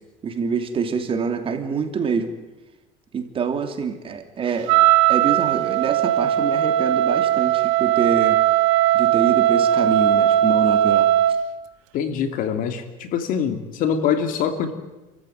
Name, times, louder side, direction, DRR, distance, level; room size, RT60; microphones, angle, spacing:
voice 1, 0.2-2.3 3.1-4.7 5.1-8.4 8.9-11.1, right 6 dB, 35° right, 6 dB, 3.0 m, -26 dB
Wind instrument woodwind instrument, 4.7-11.5, right 12 dB, 85° right, 1.4 m, -18 dB
voice 2, 11.9-14.7, left 7 dB, 60° left, 8 dB, 2.8 m, -24 dB
29.0 x 14.5 x 9.3 m, 1.1 s
supercardioid pair, 110°, 16 cm